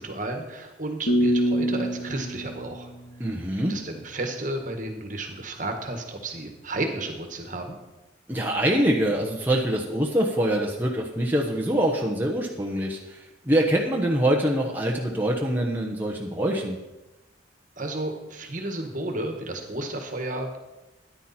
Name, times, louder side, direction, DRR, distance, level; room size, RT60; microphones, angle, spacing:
voice 1, 0.0-2.9 3.7-7.7 17.8-20.6, right 2 dB, 40° right, 4 dB, 1.7 m, -32 dB
sound 1, 1.1-4.0, equal, 75° left, 1.7 m, -26 dB
voice 2, 3.2-3.7 8.3-16.8, right 1 dB, 10° right, -1 dB, 1.1 m, -24 dB
14.0 x 10.5 x 4.4 m, 1.0 s
head